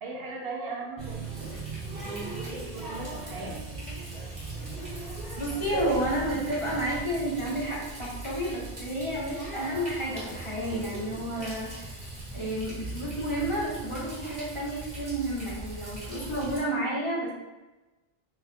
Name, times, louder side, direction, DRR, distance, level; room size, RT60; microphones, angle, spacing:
voice 1, 0.0-1.5 2.0-3.5, right 3 dB, 70° right, -2 dB, 1.0 m, -38 dB
Water tap faucet, 1.0-16.6, right 2 dB, 35° right, 1.5 m, -38 dB
voice 2, 5.4-12.0 12.3-17.3, right 1 dB, 30° left, -6 dB, 0.8 m, -31 dB
3.1 x 2.4 x 4.1 m, 1.1 s
omnidirectional pair, 1.0 m